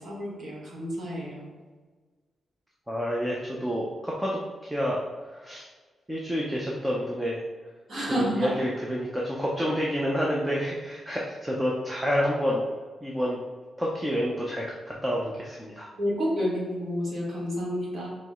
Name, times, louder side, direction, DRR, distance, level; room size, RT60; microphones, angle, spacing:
voice 1, 0.0-1.4 7.9-8.5 15.9-18.1, equal, 40° right, -5 dB, 1.4 m, -30 dB
voice 2, 2.9-5.0 5.4-5.6 6.1-7.4 8.2-12.6 13.0-13.4 13.8-15.9, equal, 5° right, -3 dB, 0.5 m, -28 dB
4.6 x 3.0 x 3.5 m, 1.4 s
wide cardioid pair, 180°, 0 cm